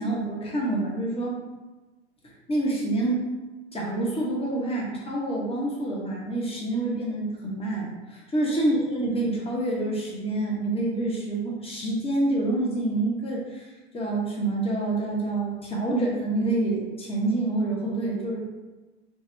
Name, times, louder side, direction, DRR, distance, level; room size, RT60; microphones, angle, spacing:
voice 1, 0.0-1.4 2.5-3.2 3.7-13.7 13.9-18.4, right 2 dB, 15° left, -3 dB, 1.0 m, -27 dB
3.6 x 2.4 x 3.1 m, 1.2 s
hypercardioid pair, 85°, 34 cm